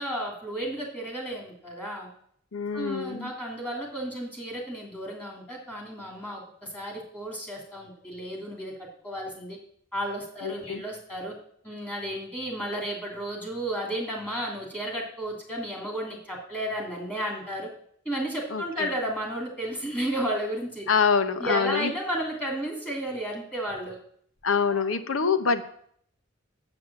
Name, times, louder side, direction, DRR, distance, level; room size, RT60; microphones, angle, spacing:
voice 1, 0.0-2.1 2.7-8.7 9.0-9.6 9.9-11.3 11.6-17.7 18.0-20.9 21.4-24.0 24.7-24.9, right 1 dB, 10° left, 0 dB, 2.9 m, -33 dB
voice 2, 2.5-3.3 10.4-10.8 18.5-18.9 20.9-21.9 24.4-25.6, left 5 dB, 80° left, 10 dB, 0.8 m, -25 dB
8.0 x 7.7 x 7.5 m, 0.66 s
head